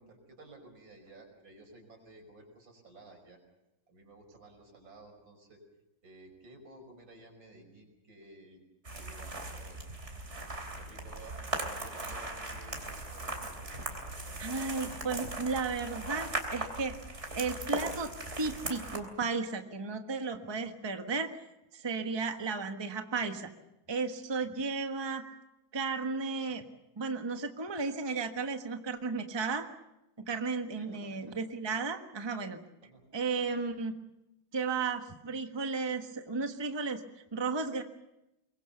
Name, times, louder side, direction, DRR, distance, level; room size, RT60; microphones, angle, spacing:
voice 1, 0.0-3.4 3.9-5.6 6.0-8.6 8.9-9.8 10.7-13.7 30.8-31.4 32.8-33.1 33.4-33.6, right 2 dB, 80° right, 3 dB, 6.2 m, -54 dB
sound 1, 8.8-19.0, right 2 dB, 35° right, 3.7 m, -39 dB
voice 2, 14.4-17.0 17.3-21.4 21.7-23.5 23.9-25.2 25.7-26.6 27.0-29.7 30.2-32.6 33.1-33.9 34.5-37.0 37.3-37.8, right 4 dB, 15° right, 6 dB, 1.2 m, -34 dB
23.5 x 22.0 x 6.9 m, 0.90 s
omnidirectional pair, 2.1 m